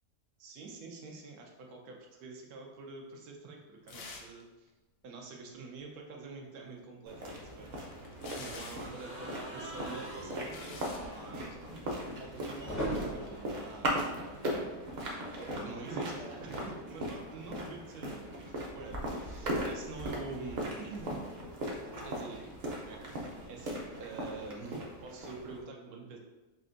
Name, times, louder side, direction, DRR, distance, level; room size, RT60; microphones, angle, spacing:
voice 1, 0.4-4.7 5.0-7.9 8.4-14.4 15.3-21.3 22.0-22.5 22.8-26.2, right 3 dB, 80° right, 0 dB, 1.2 m, -46 dB
sound 1, 3.9-4.4 4.7-4.8 7.2-9.0 9.9-11.1 11.9-12.1, left 4 dB, 80° left, 1.1 m, -48 dB
sound 2, 7.1-25.6, equal, 55° right, 0.5 m, -39 dB
sound 3, 8.8-14.9 15.2-15.4 15.6-15.7 17.0-19.3, right 1 dB, 20° left, 0.5 m, -43 dB
5.5 x 2.5 x 2.5 m, 1.1 s
omnidirectional pair, 1.6 m